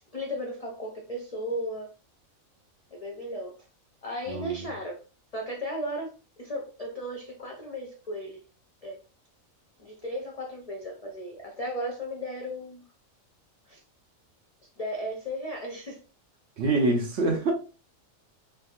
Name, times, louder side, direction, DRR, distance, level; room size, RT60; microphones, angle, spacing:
voice 1, 0.1-1.9 2.9-3.6 4.0-5.0 5.3-6.1 6.4-8.4 8.8-9.0 9.8-12.8 13.7-13.8 14.8-16.0, equal, 55° left, 0.4 m, -35 dB
voice 2, 4.3-4.7 16.6-17.5, right 2 dB, 60° right, 0.9 m, -25 dB
3.5 x 2.6 x 2.4 m
omnidirectional pair, 1.5 m